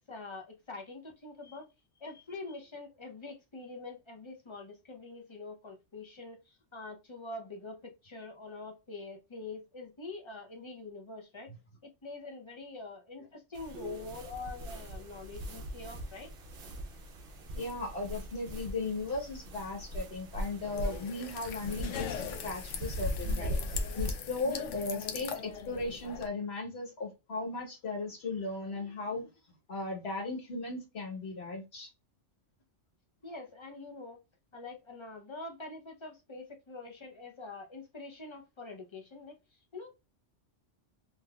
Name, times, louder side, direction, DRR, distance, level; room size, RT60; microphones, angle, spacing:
voice 1, 0.1-1.7 2.0-11.5 11.8-16.3 33.2-34.2 34.5-40.0, left 3 dB, 30° left, 0.6 m, -45 dB
sound 1, 13.5-24.2, equal, 55° right, 0.9 m, -39 dB
voice 2, 17.5-29.3 29.7-31.9, left 3 dB, 60° left, 1.4 m, -37 dB
sound 2, 20.6-26.3, left 6 dB, 85° left, 1.0 m, -40 dB
3.6 x 2.8 x 2.3 m
omnidirectional pair, 1.2 m